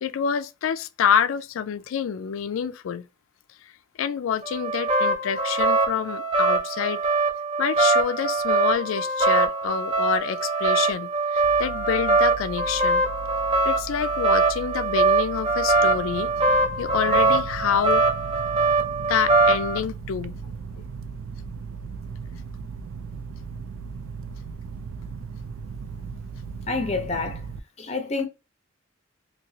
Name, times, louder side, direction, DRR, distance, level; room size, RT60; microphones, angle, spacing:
voice 1, 0.0-3.1 4.0-7.0 7.6-13.0 13.7-16.3 16.8-18.0 19.1-20.4, left 8 dB, 80° left, 0.3 m, -27 dB
sound 1, 4.4-19.8, right 3 dB, 25° right, 0.6 m, -23 dB
sound 2, 11.4-27.6, right 5 dB, 85° right, 0.3 m, -37 dB
voice 2, 26.6-27.4 27.8-28.3, left 3 dB, 30° left, 0.6 m, -28 dB
2.9 x 2.7 x 2.6 m
head